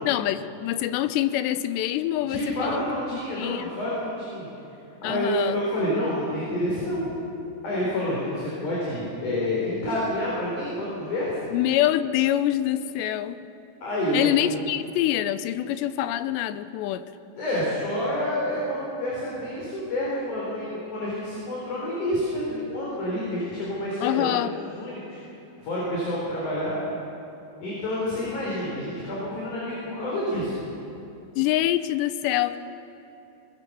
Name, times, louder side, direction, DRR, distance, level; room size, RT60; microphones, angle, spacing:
voice 1, 0.0-2.8 3.4-3.7 5.0-5.6 11.5-13.5 14.1-17.0 24.0-24.6 31.4-32.6, left 13 dB, 85° left, 12 dB, 2.8 m, -25 dB
voice 2, 2.3-4.5 5.0-7.1 7.6-11.4 13.8-14.6 17.4-25.2 25.6-26.8 27.6-30.6, left 1 dB, 45° left, -6 dB, 5.5 m, -28 dB
21.5 x 21.0 x 7.0 m, 3.0 s
omnidirectional pair, 5.0 m